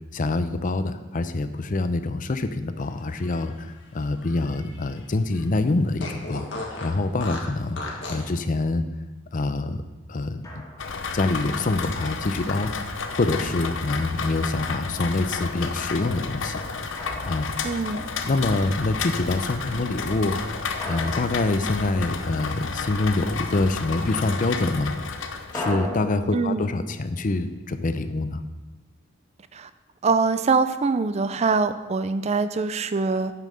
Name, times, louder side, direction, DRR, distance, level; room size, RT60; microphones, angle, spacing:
voice 1, 0.1-6.5 6.8-7.8 8.1-8.8 9.3-9.8 10.1-10.5 11.1-12.7 13.1-16.6 17.2-17.5 18.3-20.4 20.9-24.9 25.5-28.4, left 2 dB, 45° left, 11 dB, 0.6 m, -25 dB
Fart, 3.0-5.0 5.3-5.4 6.0-8.3, left 2 dB, 70° left, 1.6 m, -36 dB
Drum, 10.4-11.1 13.1-14.2 17.0-18.1 20.8-22.4 25.5-28.5, left 1 dB, 20° left, 1.7 m, -38 dB
Rain, 10.8-25.8, left 4 dB, 85° left, 0.8 m, -32 dB
voice 2, 17.6-18.1 26.3-26.7 29.5-29.7 30.0-33.3, right 4 dB, 35° right, 12 dB, 0.4 m, -23 dB
9.0 x 5.7 x 6.3 m, 1.1 s
head